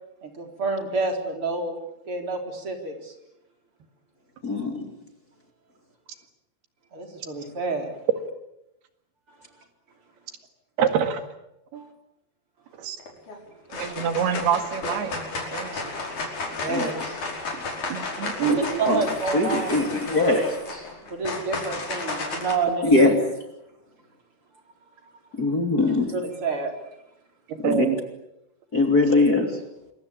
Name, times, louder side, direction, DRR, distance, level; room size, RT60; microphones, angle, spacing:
voice 1, 0.2-1.8 2.1-3.1 6.9-8.0 11.7-11.9 13.7-14.0 16.6-17.2 17.5-17.6 18.6-20.5 21.1-23.3 25.9-26.7, right 3 dB, 35° right, 4 dB, 4.6 m, -29 dB
voice 2, 4.4-4.8 16.7-16.8 18.5-19.0 19.3-20.4 22.8-23.1 25.4-26.1 27.6-27.9 28.7-29.5, left 2 dB, 25° left, 4 dB, 2.9 m, -21 dB
voice 3, 10.8-11.2 11.7-11.8 12.8-13.0 13.8-15.1 15.5-16.0 17.9-18.6 27.5-28.0, right 8 dB, 90° right, 8 dB, 4.0 m, -26 dB
sound 1, 13.0-13.4 13.7-22.5, left 3 dB, 50° left, 6.3 m, -33 dB
27.5 x 23.0 x 8.8 m, 0.84 s
omnidirectional pair, 4.4 m